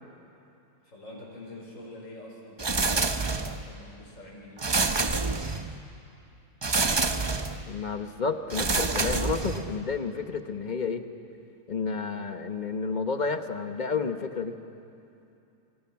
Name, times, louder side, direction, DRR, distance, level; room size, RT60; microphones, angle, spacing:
voice 1, 0.8-4.7, left 1 dB, 60° left, -3 dB, 5.2 m, -45 dB
sound 1, 2.6-3.7 4.6-5.8 6.6-7.6 8.5-9.8, right 3 dB, 30° right, 0.5 m, -27 dB
voice 2, 7.7-11.0 11.7-14.5, left 5 dB, 35° left, 7 dB, 1.1 m, -31 dB
29.0 x 24.5 x 5.9 m, 2.7 s
omnidirectional pair, 1.5 m